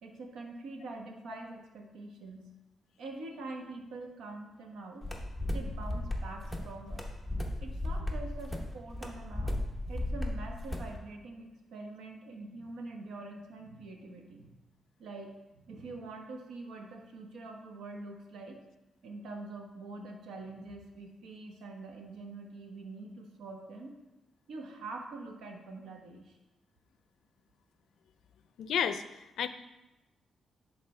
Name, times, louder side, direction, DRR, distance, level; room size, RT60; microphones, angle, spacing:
voice 1, 0.0-2.5 3.0-5.0 5.5-7.0 7.6-9.6 9.9-14.5 15.0-18.6 19.0-23.9 24.5-26.4, right 2 dB, 85° right, 2 dB, 1.0 m, -45 dB
sound 1, 5.0-10.9, left 1 dB, 5° right, 0.9 m, -35 dB
voice 2, 28.6-29.5, left 9 dB, 85° left, 11 dB, 0.4 m, -32 dB
11.0 x 4.2 x 3.3 m, 1.0 s
cardioid pair, 130°, 0 cm